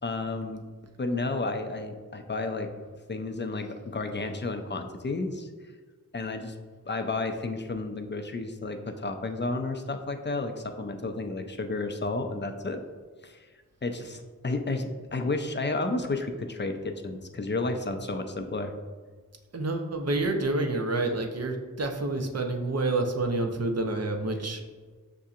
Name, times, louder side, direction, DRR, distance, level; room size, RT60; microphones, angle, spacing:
voice 1, 0.0-0.6 1.0-2.7 3.1-5.5 6.1-6.5 6.9-12.8 13.2-13.4 13.8-18.7, left 3 dB, 35° left, 6 dB, 0.4 m, -32 dB
voice 2, 19.5-24.6, right 2 dB, 50° right, 3 dB, 0.6 m, -28 dB
6.7 x 2.7 x 2.4 m, 1.4 s
wide cardioid pair, 50°, 32 cm